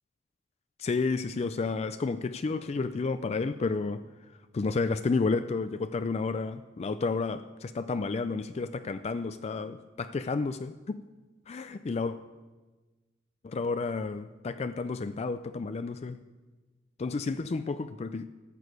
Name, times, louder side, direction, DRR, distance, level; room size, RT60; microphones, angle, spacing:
voice 1, 0.8-4.0 4.5-11.0 11.5-12.2 13.4-16.2 17.0-18.3, left 4 dB, 35° left, 11 dB, 0.4 m, -31 dB
13.5 x 6.4 x 8.0 m, 1.2 s
head